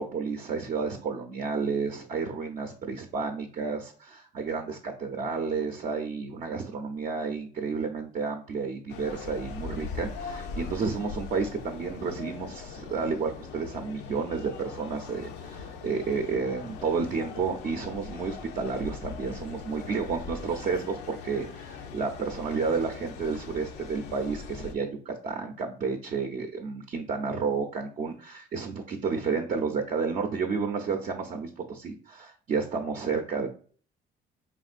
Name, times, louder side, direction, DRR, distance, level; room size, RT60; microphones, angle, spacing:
voice 1, 0.0-33.5, right 5 dB, 50° right, 4 dB, 0.6 m, -31 dB
sound 1, 8.9-24.8, left 5 dB, 80° left, 0.6 m, -41 dB
4.4 x 3.7 x 2.4 m, 0.44 s
cardioid pair, 110°, 17 cm